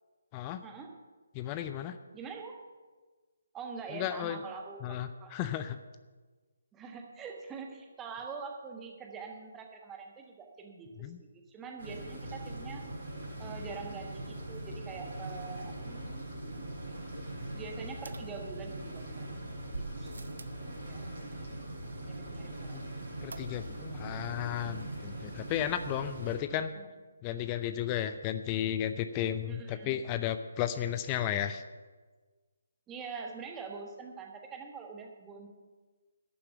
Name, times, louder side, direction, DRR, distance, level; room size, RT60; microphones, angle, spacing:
voice 1, 1.3-2.0 3.9-4.4 4.8-5.8 11.0-11.2 22.7-22.8 23.2-26.7 27.2-31.6, left 10 dB, 20° left, 10 dB, 0.5 m, -34 dB
voice 2, 2.1-2.6 3.5-5.4 6.7-12.8 13.4-16.3 17.5-19.3 20.0-20.1 20.8-21.1 22.0-23.1 26.7-26.9 29.5-30.0 32.9-35.5, right 5 dB, 10° right, 3 dB, 1.4 m, -44 dB
sound 1, 11.8-26.4, right 1 dB, 45° right, 4.2 m, -41 dB
sound 2, 18.1-19.0 19.7-20.7 23.3-23.9 24.2-24.3 24.5-24.6, right 3 dB, 65° right, 0.8 m, -46 dB
11.5 x 7.0 x 9.1 m, 1.3 s
figure-of-eight pair, 145°, 0 cm